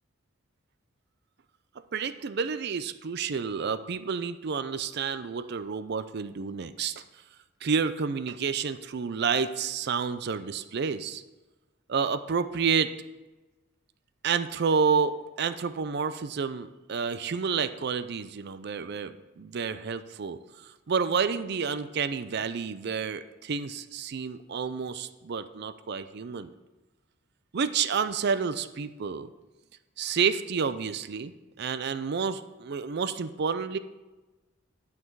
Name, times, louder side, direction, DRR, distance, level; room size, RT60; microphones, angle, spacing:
voice 1, 1.9-7.0 7.6-11.2 11.9-12.9 14.2-26.5 27.5-29.3 30.0-33.8, right 6 dB, 55° right, 12 dB, 0.5 m, -29 dB
10.5 x 5.9 x 4.6 m, 1.1 s
head